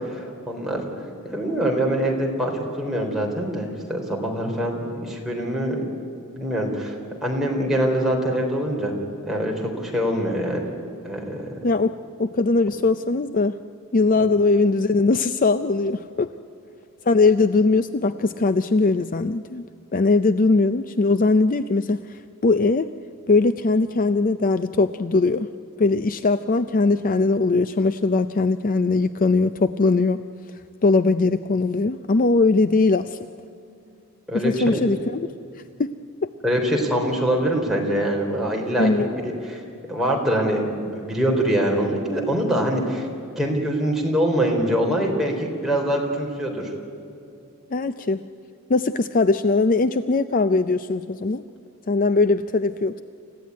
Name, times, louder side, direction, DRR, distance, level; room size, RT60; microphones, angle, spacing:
voice 1, 0.1-0.8 1.3-5.8 6.3-6.9 7.2-9.0 9.3-10.6 11.0-11.5 34.3-34.8 36.4-39.6 39.9-43.1 43.4-46.7, right 1 dB, ahead, -2 dB, 3.8 m, -24 dB
voice 2, 12.2-13.6 13.9-16.3 17.1-19.6 19.9-22.9 23.3-25.5 25.8-30.2 30.8-33.2 34.3-35.3 35.8-35.9 36.2-36.3 38.8-39.1 47.7-48.3 48.7-51.4 51.9-53.0, left 3 dB, 40° left, 12 dB, 0.5 m, -20 dB
28.0 x 15.5 x 9.4 m, 2.6 s
head